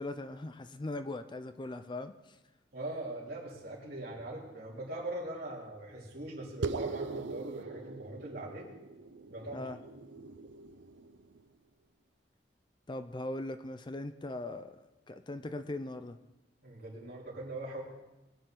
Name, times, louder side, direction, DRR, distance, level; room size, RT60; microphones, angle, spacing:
voice 1, 0.0-2.4 9.5-9.8 12.9-16.2, left 2 dB, 25° left, 10 dB, 0.5 m, -40 dB
voice 2, 2.7-8.7 9.3-9.7 16.6-17.8, right 1 dB, 60° right, -3 dB, 3.4 m, -41 dB
sound 1, 6.6-11.4, right 4 dB, 85° right, 0.6 m, -41 dB
21.5 x 9.4 x 3.8 m, 1.0 s
head